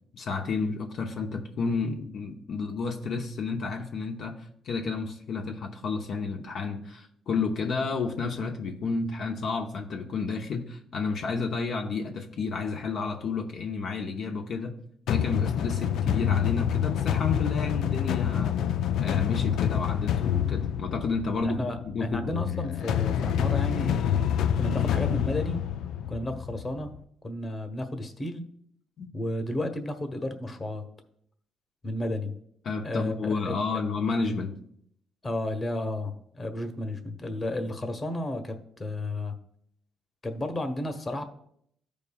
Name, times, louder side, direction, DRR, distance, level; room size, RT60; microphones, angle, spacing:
voice 1, 0.1-14.7 15.1-18.6 19.0-22.4 29.0-29.1 32.6-34.6, left 4 dB, 65° left, 2 dB, 0.8 m, -31 dB
sound 1, 15.1-27.0, left 9 dB, 80° left, 0.4 m, -27 dB
voice 2, 21.4-24.2 24.6-25.6 26.1-26.9 27.2-28.5 29.1-30.8 31.8-32.3 32.8-33.6 35.2-39.4 40.2-41.2, left 1 dB, 30° left, 7 dB, 1.1 m, -32 dB
14.0 x 5.2 x 2.3 m, 0.70 s
cardioid pair, 90°, 0 cm